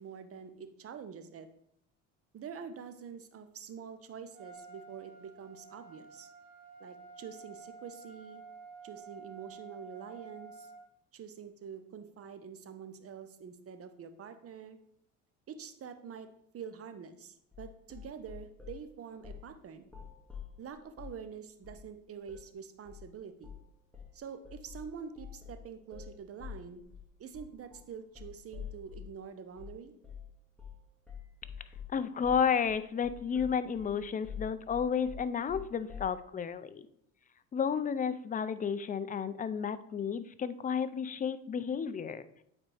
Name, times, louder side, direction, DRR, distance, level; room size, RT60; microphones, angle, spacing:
voice 1, 0.0-1.5 2.3-6.3 6.8-8.4 8.8-10.7 11.1-14.8 15.5-19.9 20.6-23.5 24.1-26.8 27.2-29.9, right 7 dB, 40° right, 9 dB, 0.8 m, -46 dB
Trumpet, 4.3-10.9, right 4 dB, 75° right, 2.0 m, -51 dB
sound 1, 17.5-18.8 19.2-19.5 19.8-21.2 21.6-21.9 22.3-22.5 22.9-23.1 23.4-23.7 23.9-29.2 29.6-29.8 30.0-30.3 30.6-30.8 31.1-36.2, left 8 dB, 5° left, 1.9 m, -47 dB
voice 2, 31.9-36.8 37.5-42.3, left 7 dB, 25° left, 14 dB, 0.4 m, -32 dB
8.6 x 4.2 x 3.3 m, 0.71 s
hypercardioid pair, 75°, 38 cm